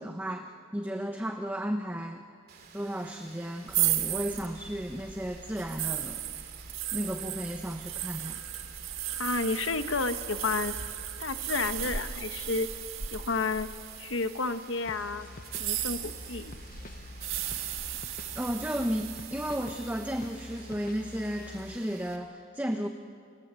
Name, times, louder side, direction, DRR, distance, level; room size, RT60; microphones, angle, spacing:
voice 1, 0.0-2.2 2.7-6.2 6.9-8.4 18.4-22.9, equal, 10° right, 5 dB, 0.9 m, -34 dB
Rain, 2.5-22.2, right 5 dB, 50° right, 2.9 m, -53 dB
sound 1, 3.7-14.6 15.4-20.2, right 11 dB, 80° right, 1.7 m, -35 dB
voice 2, 9.2-10.7 11.2-12.7 13.1-13.7 14.0-15.3 15.6-16.5, left 3 dB, 65° left, 9 dB, 1.2 m, -31 dB
sound 2, 14.8-21.8, left 2 dB, 45° left, 0.9 m, -47 dB
29.5 x 24.0 x 7.6 m, 2.3 s
head